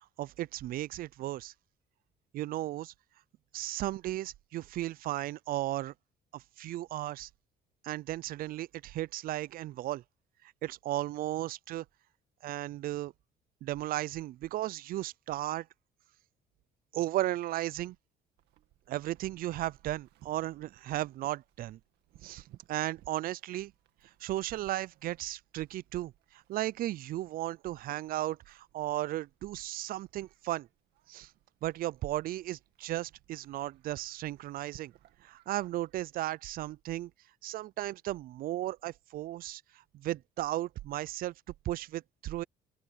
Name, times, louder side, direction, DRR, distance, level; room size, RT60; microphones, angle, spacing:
voice 1, 0.2-1.5 2.3-2.9 3.5-5.9 6.3-7.3 7.8-10.0 10.6-11.8 12.4-13.1 13.6-15.7 16.9-18.0 18.9-21.8 22.2-23.7 24.2-30.7 31.1-31.3 31.6-34.9 35.2-37.1 37.4-39.6 39.9-41.3 41.7-42.4, right 15 dB, 60° right, 0.4 m, -35 dB
Livestock farm animals working animals, 18.4-36.1, right 15 dB, 80° right, 2.1 m, -62 dB
open air
cardioid pair, 110°, 17 cm